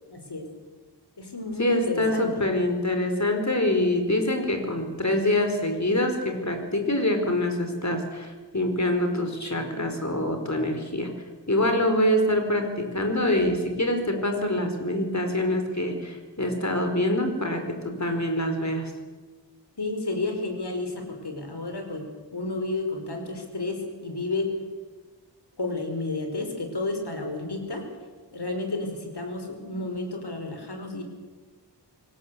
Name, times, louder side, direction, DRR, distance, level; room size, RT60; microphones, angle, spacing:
voice 1, 0.1-0.5 1.2-2.5 19.8-24.5 25.6-27.9 28.3-31.0, left 2 dB, 70° left, 4 dB, 5.2 m, -31 dB
voice 2, 1.6-11.1 11.5-18.9, left 1 dB, 40° left, 5 dB, 4.8 m, -25 dB
25.5 x 17.0 x 8.4 m, 1.3 s
wide cardioid pair, 65°, 42 cm